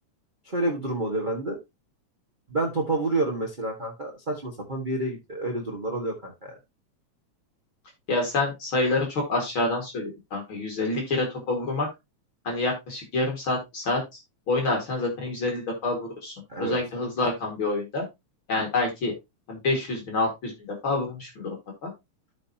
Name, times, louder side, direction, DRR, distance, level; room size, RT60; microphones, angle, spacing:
voice 1, 0.4-1.6 2.5-6.5 16.5-16.8, right 2 dB, 25° right, -1 dB, 1.0 m, -29 dB
voice 2, 8.1-11.9 12.4-14.2 14.5-16.3 16.6-18.1 18.5-19.1 19.5-20.5 20.8-21.6 21.8-21.9, left 2 dB, 45° left, 1 dB, 2.6 m, -27 dB
13.0 x 5.3 x 2.8 m, 0.22 s
omnidirectional pair, 3.3 m